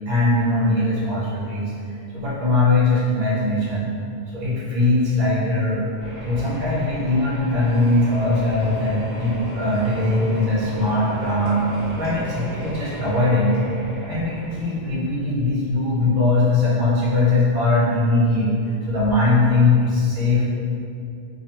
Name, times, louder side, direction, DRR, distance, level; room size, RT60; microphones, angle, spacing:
voice 1, 0.1-1.7 2.1-3.9 4.3-5.8 6.2-11.7 11.9-13.6 14.0-18.5 18.9-20.5, left 2 dB, 55° right, -8 dB, 0.8 m, -20 dB
sound 1, 6.0-14.7, right 1 dB, 60° left, 1.0 m, -36 dB
sound 2, 7.6-13.2, equal, 90° left, 1.0 m, -37 dB
2.4 x 2.2 x 2.9 m, 2.5 s
omnidirectional pair, 1.1 m